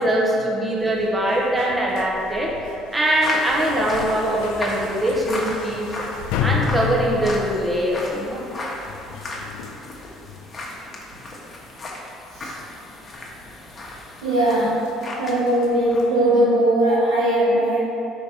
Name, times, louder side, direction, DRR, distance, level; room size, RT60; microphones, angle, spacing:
voice 1, 0.0-6.1 6.4-8.4, right 1 dB, 15° right, -2 dB, 1.0 m, -22 dB
sound 1, 0.8-11.1 11.5-11.7 12.0-16.3, left 6 dB, 70° left, 0.3 m, -33 dB
sound 2, 3.2-15.4 15.7-16.0, left 1 dB, 35° left, 1.1 m, -35 dB
voice 2, 14.2-14.8 15.2-17.8, right 1 dB, 90° right, -9 dB, 1.0 m, -19 dB
5.1 x 4.3 x 4.8 m, 2.8 s
hypercardioid pair, 60°, 0 cm